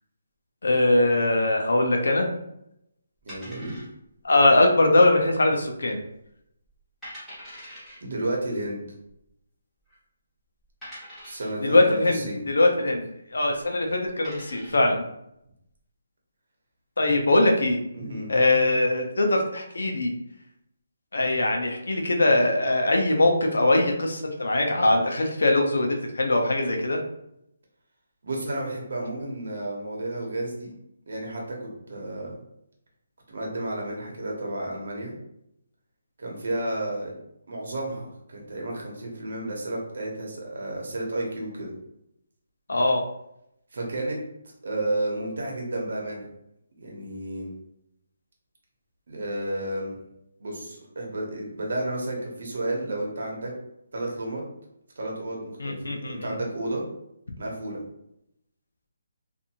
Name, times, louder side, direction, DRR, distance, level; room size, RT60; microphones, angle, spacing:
voice 1, 0.6-2.3 4.2-6.0 11.6-15.0 17.0-17.8 18.3-20.1 21.1-27.0 42.7-43.0 55.6-56.3, left 2 dB, 90° left, 2 dB, 0.6 m, -21 dB
voice 2, 3.2-3.9 8.0-8.8 11.2-12.4 17.9-18.3 28.2-30.7 31.1-32.4 33.3-35.1 36.2-37.2 37.5-41.7 43.7-44.2 44.6-46.3 46.8-47.5 49.1-50.0 50.4-53.5 53.9-54.4 55.0-56.8 57.4-57.8, right 1 dB, 55° right, -1 dB, 0.9 m, -32 dB
sound 1, 3.3-4.2 4.5-4.6 5.2-5.6 6.0-6.1 6.7-6.8 7.0-8.0 9.1-9.2 9.9-10.0 10.8-11.6 13.5-13.7 14.0-14.9, equal, 5° left, 1.0 m, -43 dB
2.6 x 2.5 x 2.8 m, 0.80 s
hypercardioid pair, 175°, 0 cm